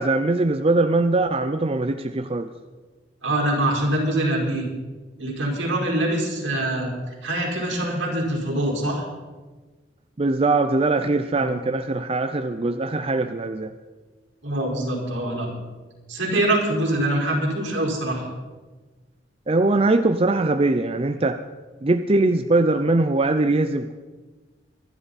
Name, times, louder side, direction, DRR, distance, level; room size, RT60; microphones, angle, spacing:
voice 1, 0.0-2.5 10.2-13.7 19.5-21.4 21.8-23.9, right 2 dB, 30° right, 8 dB, 0.5 m, -21 dB
voice 2, 3.2-4.7 5.2-6.9 7.2-9.0 11.3-11.5 14.4-15.5 16.1-18.2, right 1 dB, 80° right, -2 dB, 4.9 m, -24 dB
25.0 x 11.5 x 4.2 m, 1.3 s
head